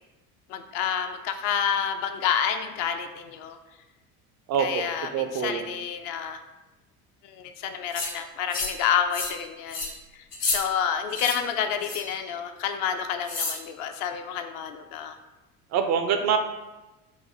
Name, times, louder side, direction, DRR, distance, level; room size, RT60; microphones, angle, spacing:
voice 1, 0.5-3.6 4.6-6.4 7.2-9.9 10.1-15.2, left 8 dB, 45° left, 6 dB, 0.5 m, -29 dB
voice 2, 4.5-4.8 5.1-5.7 15.7-16.4, right 7 dB, 40° right, 6 dB, 0.4 m, -25 dB
sound 1, 7.9-8.1 8.5-8.8 9.1-9.4 9.7-9.9 10.3-10.6 11.1-11.4 11.8-12.1 13.3-13.6, left 3 dB, 85° left, 1.0 m, -30 dB
4.0 x 2.5 x 3.8 m, 1.1 s
figure-of-eight pair, 65°, 45 cm